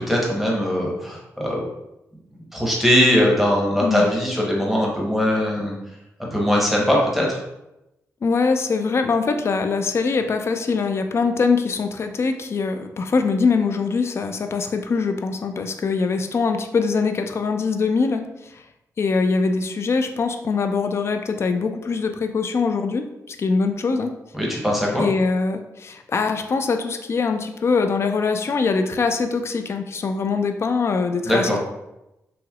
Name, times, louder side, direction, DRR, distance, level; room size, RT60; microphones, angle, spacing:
voice 1, 0.0-1.6 2.5-5.7 6.3-7.4 24.3-25.1 31.3-31.6, equal, 5° right, -3 dB, 0.9 m, -20 dB
voice 2, 8.2-18.6 19.0-24.1 25.0-31.6, left 4 dB, 45° left, 7 dB, 0.3 m, -23 dB
3.2 x 3.0 x 2.3 m, 0.91 s
cardioid pair, 75°, 6 cm